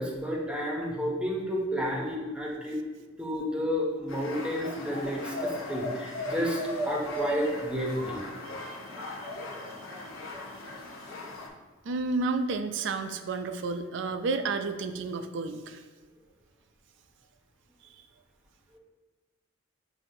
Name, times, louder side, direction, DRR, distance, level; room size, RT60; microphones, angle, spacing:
voice 1, 0.0-2.8 3.2-6.6 6.9-8.2 8.9-9.1 9.9-10.0, equal, 5° right, -2 dB, 0.7 m, -31 dB
sound 1, 4.1-11.5, left 1 dB, 85° left, 0.7 m, -37 dB
voice 2, 8.6-9.3 11.9-15.8, right 3 dB, 65° right, 9 dB, 0.4 m, -31 dB
7.4 x 2.6 x 2.6 m, 1.3 s
head